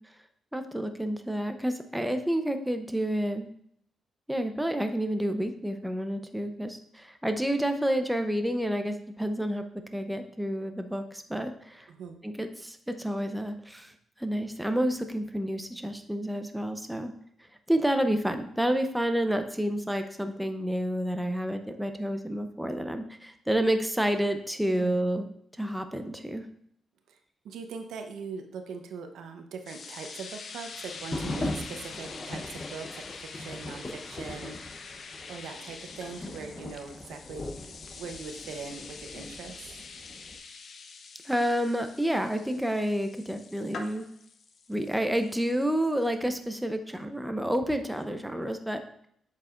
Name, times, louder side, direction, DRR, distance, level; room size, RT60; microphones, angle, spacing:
voice 1, 0.5-3.5 4.3-9.6 9.9-11.9 12.2-13.9 14.2-17.1 17.7-25.3 25.6-26.5 41.2-44.1 44.7-48.8, equal, 5° right, 7 dB, 0.7 m, -29 dB
voice 2, 11.9-12.2 24.8-25.0 27.1-27.2 27.4-35.0 35.3-37.5 37.9-39.7, right 5 dB, 85° right, 6 dB, 0.8 m, -41 dB
sound 1, 29.7-46.2, left 4 dB, 55° left, 0.7 m, -45 dB
sound 2, 30.9-40.4, left 2 dB, 30° left, 0.9 m, -40 dB
7.6 x 7.3 x 2.5 m, 0.68 s
cardioid pair, 95°, 0 cm